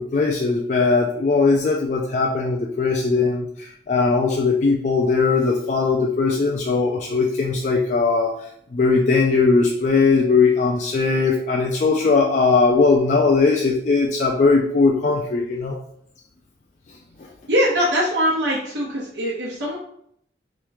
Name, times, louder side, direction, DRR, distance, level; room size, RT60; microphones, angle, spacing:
voice 1, 0.0-15.8, left 4 dB, 40° left, -1 dB, 0.3 m, -19 dB
voice 2, 17.5-19.8, equal, 90° right, -7 dB, 0.9 m, -22 dB
3.2 x 3.1 x 3.4 m, 0.69 s
head